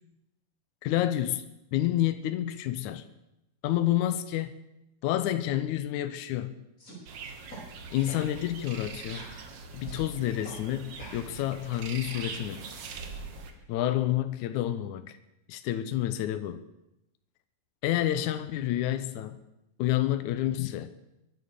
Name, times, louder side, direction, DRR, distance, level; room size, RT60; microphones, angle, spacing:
voice 1, 0.8-1.5 1.7-3.1 3.6-4.6 5.0-6.5 7.9-9.3 9.7-12.7 13.7-15.2 15.5-16.6 17.8-19.4 19.8-20.9, left 13 dB, 80° left, 11 dB, 2.2 m, -29 dB
sound 1, 6.8-7.0 7.5-7.6 8.1-8.3 8.7-8.8 9.1-10.0 10.4-10.6 11.0-12.4, right 1 dB, 25° left, 5.4 m, -47 dB
sound 2, 7.1-13.5, right 4 dB, 55° right, 2.4 m, -42 dB
23.0 x 9.3 x 6.8 m, 0.89 s
omnidirectional pair, 3.5 m